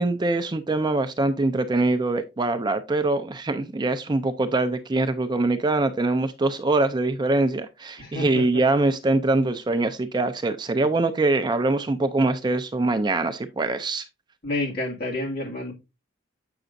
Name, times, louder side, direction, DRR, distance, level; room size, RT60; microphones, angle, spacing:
voice 1, 0.0-14.1, right 2 dB, 20° right, 0.4 m, -23 dB
voice 2, 8.0-8.6 10.8-10.9 14.4-15.7, left 2 dB, 50° left, 2.3 m, -29 dB
7.8 x 6.0 x 2.5 m
head